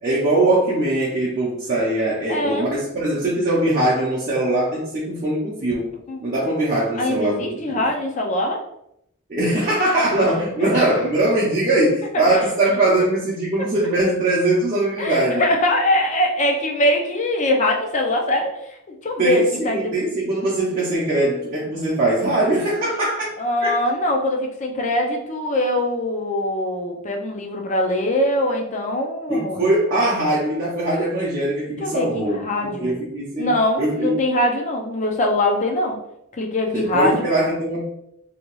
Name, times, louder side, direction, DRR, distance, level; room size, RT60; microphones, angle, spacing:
voice 1, 0.0-5.9 6.2-7.8 9.3-15.4 19.2-23.3 23.6-23.7 29.3-34.1 36.7-37.8, right 1 dB, 40° right, -6 dB, 0.6 m, -21 dB
voice 2, 2.3-2.7 6.1-6.2 7.0-8.6 10.6-10.7 12.3-12.4 15.0-18.6 18.9-19.9 23.4-29.6 31.8-32.9 33.4-36.0 36.3-37.3, left 1 dB, 35° left, 2 dB, 0.4 m, -22 dB
2.8 x 2.2 x 3.0 m, 0.78 s
head